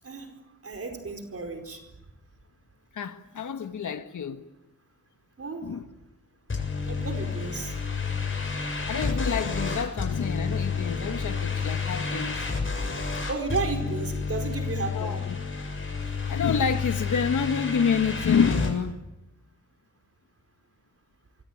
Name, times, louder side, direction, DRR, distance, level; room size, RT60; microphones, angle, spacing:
voice 1, 0.6-1.8 5.4-5.7 6.8-7.7 13.2-15.2, right 4 dB, 50° right, 5 dB, 4.7 m, -33 dB
voice 2, 2.9-4.4 5.6-5.8 8.9-12.4 14.9-15.3 16.3-19.0, left 6 dB, 80° left, 8 dB, 1.6 m, -28 dB
sound 1, 6.5-18.7, left 4 dB, 40° left, 7.5 m, -30 dB
25.5 x 24.0 x 9.4 m, 0.95 s
wide cardioid pair, 110°, 30 cm